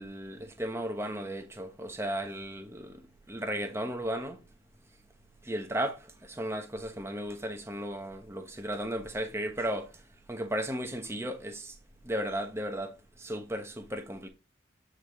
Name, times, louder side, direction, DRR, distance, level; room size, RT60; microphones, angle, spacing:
voice 1, 0.0-3.0 3.3-4.4 5.4-9.9 10.3-11.7 12.0-14.3, right 1 dB, 15° right, 1.1 m, -35 dB
8.7 x 5.0 x 3.6 m
head